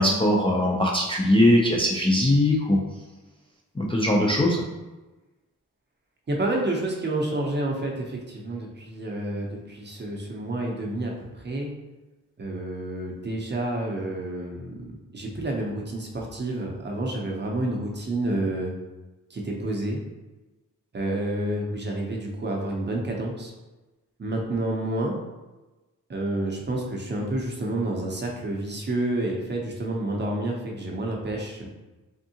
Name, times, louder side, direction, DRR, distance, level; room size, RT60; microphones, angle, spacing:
voice 1, 0.0-2.8 3.8-4.6, left 1 dB, 15° left, -3 dB, 0.3 m, -20 dB
voice 2, 6.3-11.8 12.4-18.7 19.3-20.0 20.9-23.5 24.2-25.1 26.1-31.7, right 1 dB, 35° right, -1 dB, 0.6 m, -29 dB
3.6 x 3.4 x 2.7 m, 1.1 s
wide cardioid pair, 180°, 33 cm